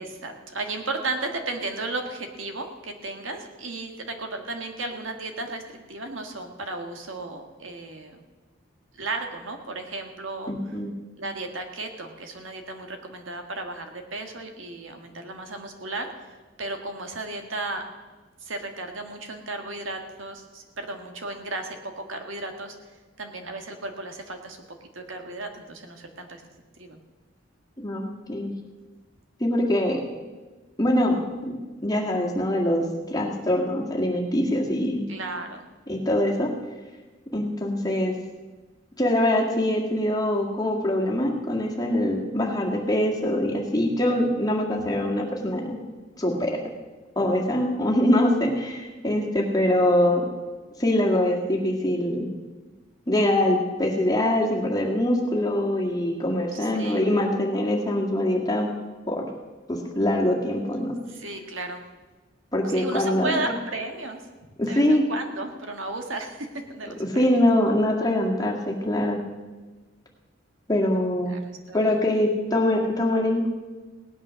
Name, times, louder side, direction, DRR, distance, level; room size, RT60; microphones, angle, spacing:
voice 1, 0.0-8.2 8.9-10.5 11.2-16.3 16.6-17.8 18.4-22.7 23.2-24.6 24.9-26.4 26.8-27.0 35.1-35.6 44.8-44.9 56.5-57.1 61.1-61.8 62.7-64.2 64.7-67.4 71.3-72.0, right 2 dB, 85° right, 5 dB, 1.7 m, -34 dB
voice 2, 10.5-10.9 27.8-28.5 29.4-30.0 30.8-35.1 35.9-36.5 37.3-38.1 39.0-45.8 46.2-46.6 47.2-50.3 50.8-52.3 53.1-58.7 59.1-59.2 59.7-61.0 62.5-63.4 64.6-65.0 67.2-69.2 70.7-71.4 71.7-73.5, left 1 dB, 20° left, -1 dB, 1.8 m, -23 dB
17.5 x 9.6 x 6.3 m, 1.3 s
head